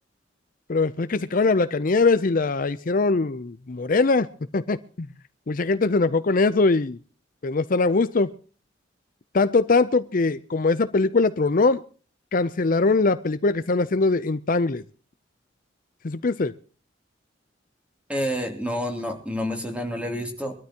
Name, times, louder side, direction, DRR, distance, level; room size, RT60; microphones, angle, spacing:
voice 1, 0.7-4.3 4.5-5.1 5.5-7.0 7.4-8.3 9.3-11.8 12.3-14.8 16.0-16.5, left 3 dB, 45° left, 13 dB, 0.6 m, -22 dB
voice 2, 18.1-20.5, equal, 5° right, 4 dB, 3.0 m, -28 dB
23.5 x 13.0 x 2.9 m, 0.39 s
head